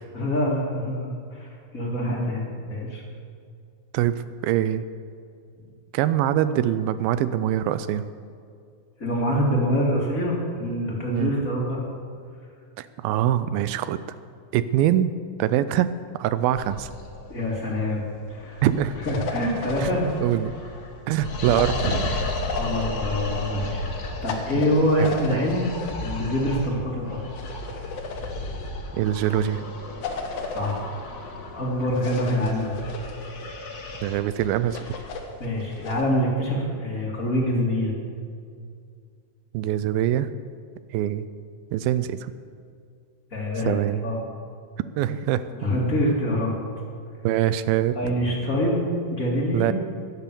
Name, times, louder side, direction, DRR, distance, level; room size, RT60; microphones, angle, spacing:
voice 1, 0.1-3.0 9.0-11.8 17.3-18.6 19.0-20.1 22.6-23.8 24.2-25.7 26.0-27.2 30.5-30.9 31.5-32.7 35.4-37.9 43.3-44.2 45.6-46.6 48.0-49.7, equal, 25° left, -2 dB, 2.2 m, -25 dB
voice 2, 4.4-4.8 5.9-8.1 11.1-11.4 12.8-14.0 14.5-15.1 15.4-16.9 18.6-18.9 19.8-19.9 20.2-20.5 21.1-22.2 25.0-25.4 29.0-29.7 34.0-35.0 39.5-40.3 40.9-41.3 41.7-42.3 43.7-44.0 45.0-45.4 47.2-48.0 49.5-49.7, right 11 dB, 85° right, 14 dB, 2.4 m, -23 dB
sound 1, 16.6-36.2, left 2 dB, 90° left, 0.8 m, -35 dB
sound 2, 19.0-20.4 21.5-22.9 24.2-26.0 27.4-28.7 30.0-30.8 31.9-33.5 34.7-36.1, left 3 dB, 60° left, 1.8 m, -34 dB
15.0 x 10.5 x 6.9 m, 2.3 s
omnidirectional pair, 4.2 m